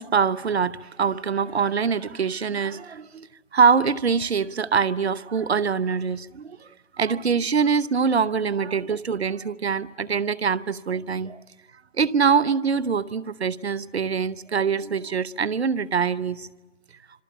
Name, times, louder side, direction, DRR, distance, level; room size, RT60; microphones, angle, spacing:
voice 1, 0.0-3.3 3.5-6.7 7.0-11.4 12.0-16.5, right 6 dB, 55° right, 0.9 m, -24 dB
27.5 x 26.5 x 7.3 m
figure-of-eight pair, 155°, 37 cm